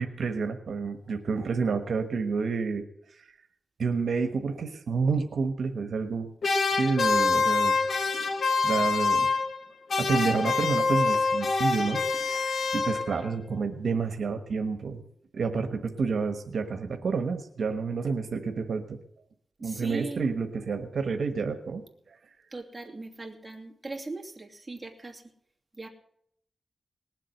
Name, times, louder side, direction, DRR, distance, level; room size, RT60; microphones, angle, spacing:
voice 1, 0.0-2.8 3.1-3.3 3.8-6.3 6.8-7.8 8.6-9.3 10.0-15.0 15.3-19.0 19.6-22.2, right 4 dB, 75° right, 7 dB, 1.3 m, -29 dB
sound 1, 6.4-9.6 9.9-13.3, left 4 dB, 65° left, 1.5 m, -26 dB
sound 2, 8.1-8.2 9.1-9.2 10.1-10.2 11.1-11.2 12.1-12.2, left 1 dB, 25° left, 7.7 m, -46 dB
voice 2, 19.6-20.2 22.5-25.2 25.7-25.9, right 3 dB, 20° right, 1 dB, 2.9 m, -39 dB
19.5 x 7.6 x 7.8 m, 0.70 s
cardioid pair, 80°, 0 cm